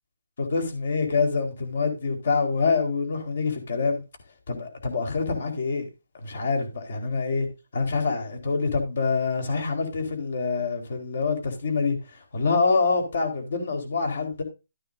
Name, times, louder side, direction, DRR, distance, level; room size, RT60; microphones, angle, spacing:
voice 1, 0.4-4.0 4.5-5.8 6.2-7.5 7.7-12.0 12.3-14.4, left 4 dB, 45° left, 4.3 m, -26 dB
13.0 x 9.6 x 2.7 m
hypercardioid pair, 175°, 0 cm